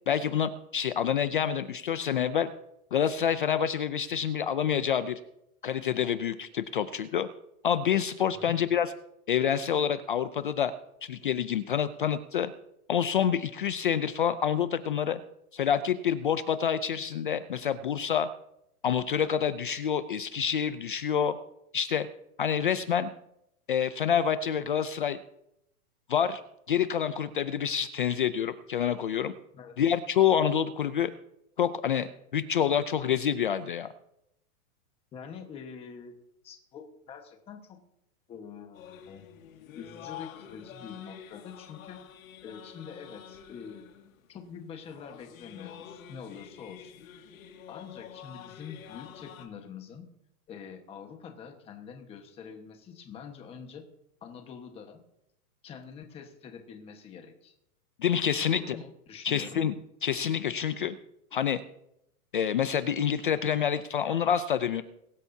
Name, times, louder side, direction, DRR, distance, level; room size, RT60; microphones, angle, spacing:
voice 1, 0.1-2.5 2.9-5.2 5.6-7.3 7.6-8.9 9.3-10.7 11.0-12.5 12.9-15.2 15.5-18.3 18.8-21.4 21.7-22.1 22.4-23.1 23.7-25.2 26.1-26.4 26.7-29.3 29.8-31.1 31.6-33.9 58.0-58.8 59.2-59.7 60.0-60.9 61.3-61.6 62.3-64.8, left 8 dB, 40° left, 12 dB, 0.4 m, -27 dB
voice 2, 35.1-36.1 36.4-37.8 38.3-39.3 39.7-42.0 42.4-43.9 44.3-46.9 47.7-50.1 50.5-53.8 54.2-55.0 55.6-57.5 58.4-59.6, left 6 dB, 15° left, 4 dB, 1.2 m, -45 dB
sound 1, 38.7-49.5, left 9 dB, 65° left, 2.1 m, -48 dB
22.0 x 12.5 x 2.7 m, 0.79 s
supercardioid pair, 175°, 45 cm